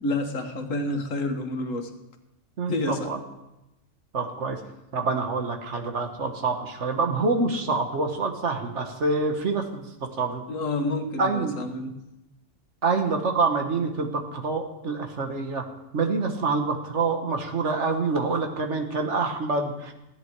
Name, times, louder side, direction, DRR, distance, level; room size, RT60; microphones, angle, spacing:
voice 1, 0.0-1.9 2.7-3.1 10.5-11.9, left 2 dB, 85° left, 6 dB, 1.7 m, -29 dB
voice 2, 2.6-3.2 4.1-4.6 4.9-9.8 10.2-10.4 11.2-11.6 12.8-15.7 15.9-19.9, right 4 dB, 65° right, 4 dB, 1.7 m, -26 dB
15.5 x 10.5 x 4.7 m, 0.93 s
omnidirectional pair, 1.3 m